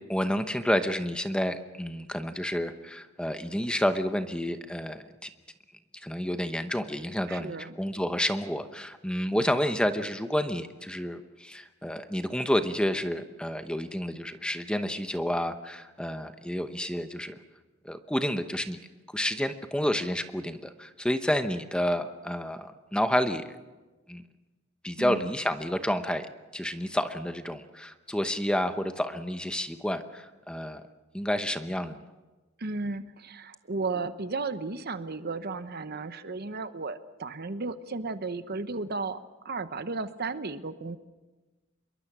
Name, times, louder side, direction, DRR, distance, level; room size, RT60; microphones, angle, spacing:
voice 1, 0.1-5.3 6.0-17.4 17.8-18.8 19.1-23.4 24.1-24.2 24.8-26.3 26.5-30.8 31.1-32.0, equal, 5° left, 8 dB, 0.9 m, -30 dB
voice 2, 7.3-7.7 25.0-25.3 32.6-39.2 39.4-41.0, right 3 dB, 50° right, 11 dB, 1.0 m, -34 dB
26.5 x 22.5 x 6.1 m, 1.2 s
head